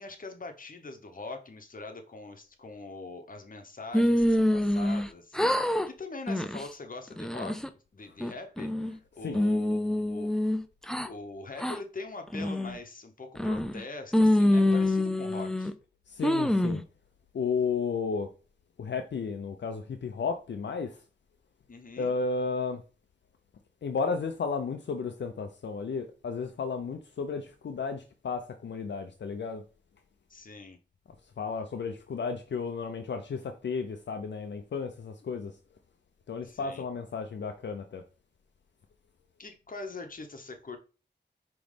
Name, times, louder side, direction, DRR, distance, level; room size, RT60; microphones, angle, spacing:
voice 1, 0.0-10.4 11.0-15.7 21.7-22.1 30.3-30.8 36.4-36.8 39.4-40.8, left 3 dB, 50° left, 0.9 m, -43 dB
sound 1, 3.9-5.1 5.3-5.9 6.3-6.6 7.1-7.7 8.2-9.0 9.3-11.1 11.6-11.8 12.3-12.8 13.4-13.8 14.1-15.7 16.2-16.8, left 1 dB, 5° left, 0.4 m, -26 dB
voice 2, 16.1-16.8 17.3-18.3 18.8-21.0 22.0-22.8 23.8-29.6 31.4-35.5 36.3-38.0, left 5 dB, 75° left, 0.5 m, -33 dB
5.1 x 3.0 x 3.3 m
wide cardioid pair, 65°, 19 cm